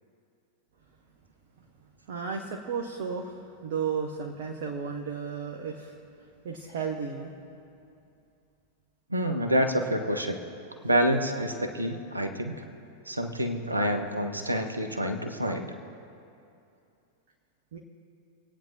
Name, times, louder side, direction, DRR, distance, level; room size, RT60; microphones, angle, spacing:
voice 1, 2.1-6.0 6.4-7.3 17.7-17.8, right 6 dB, 55° right, 2 dB, 1.1 m, -33 dB
voice 2, 9.1-10.4 10.8-12.6 13.1-15.7, right 1 dB, 80° right, 6 dB, 1.0 m, -27 dB
25.0 x 9.1 x 3.0 m, 2.6 s
figure-of-eight pair, 90°, 0 cm